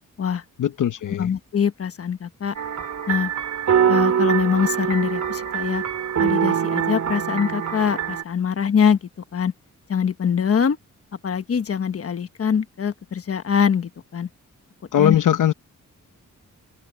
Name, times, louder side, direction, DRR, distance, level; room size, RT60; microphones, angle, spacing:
voice 1, 0.6-1.3 14.9-15.5, left 10 dB, 75° left, 0.9 m, -20 dB
voice 2, 1.2-2.5 3.1-3.3 3.9-5.8 6.2-9.5 9.9-10.8 11.2-14.3 15.0-15.2, left 7 dB, 45° left, 1.3 m, -23 dB
sound 1, 2.5-8.2, right 8 dB, 60° right, 2.9 m, -23 dB
wide cardioid pair, 145°, 31 cm